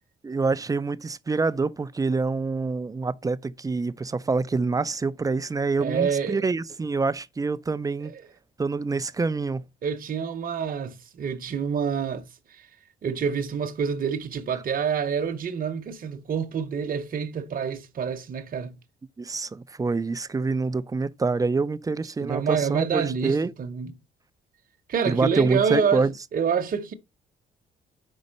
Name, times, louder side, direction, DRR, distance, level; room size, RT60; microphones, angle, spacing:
voice 1, 0.2-8.1 8.6-9.6 19.2-23.5 25.0-26.1, right 4 dB, 15° right, 0.4 m, -26 dB
voice 2, 5.8-6.4 8.1-8.2 9.8-12.6 13.0-18.8 22.2-23.9 24.9-26.9, right 6 dB, 45° right, 0.9 m, -27 dB
5.4 x 4.0 x 5.1 m
cardioid pair, 90°, 20 cm